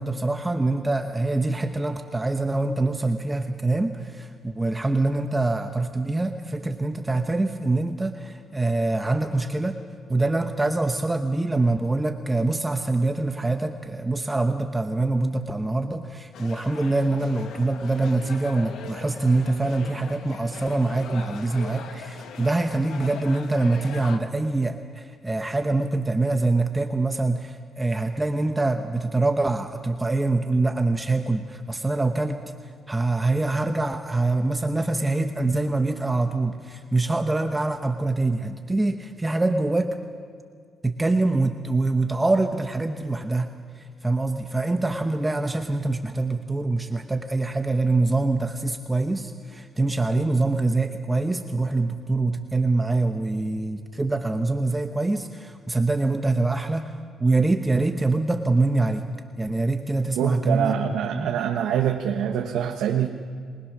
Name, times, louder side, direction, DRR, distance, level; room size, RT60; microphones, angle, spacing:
voice 1, 0.0-9.8 10.1-32.4 32.9-40.0 40.8-43.5 43.8-56.9 57.2-59.1 59.4-60.8 61.1-61.3, right 2 dB, 15° right, 6 dB, 1.1 m, -24 dB
sound 1, 16.3-24.2, left 6 dB, 75° left, 1.5 m, -40 dB
voice 2, 60.2-63.1, right 9 dB, 85° right, 2 dB, 1.3 m, -25 dB
28.0 x 20.0 x 6.2 m, 2.1 s
cardioid pair, 90°, 0 cm